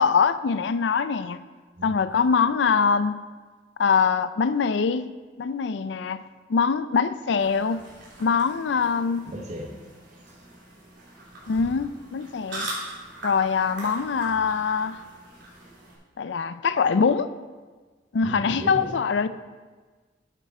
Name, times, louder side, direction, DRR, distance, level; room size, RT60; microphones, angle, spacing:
voice 1, 0.0-1.4 1.8-3.2 3.8-5.1 5.4-6.2 6.5-7.8 8.2-9.2 11.5-12.7 13.2-15.0 16.2-17.3 18.1-19.3, left 5 dB, 75° left, 13 dB, 0.4 m, -23 dB
sound 1, 7.4-16.0, right 1 dB, 85° right, 3.1 m, -40 dB
voice 2, 9.3-10.4 18.2-18.9, equal, 40° right, 1 dB, 0.8 m, -37 dB
8.3 x 7.7 x 4.3 m, 1.4 s
head